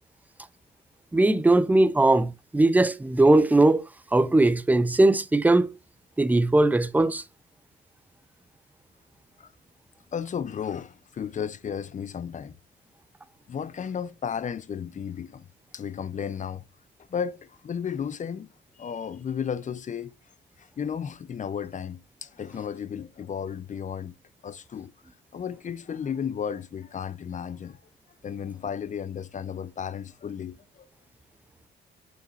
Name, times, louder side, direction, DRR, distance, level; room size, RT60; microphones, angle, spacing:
voice 1, 1.1-3.8 4.1-5.7 6.2-7.2, right 2 dB, 10° right, 0.6 m, -20 dB
voice 2, 10.1-12.6 13.5-15.5 15.7-16.6 17.1-18.5 18.8-20.1 20.6-24.1 24.4-24.9 25.3-27.8 28.2-30.9, left 7 dB, 40° left, 0.6 m, -34 dB
7.1 x 6.4 x 2.5 m
cardioid pair, 90°, 20 cm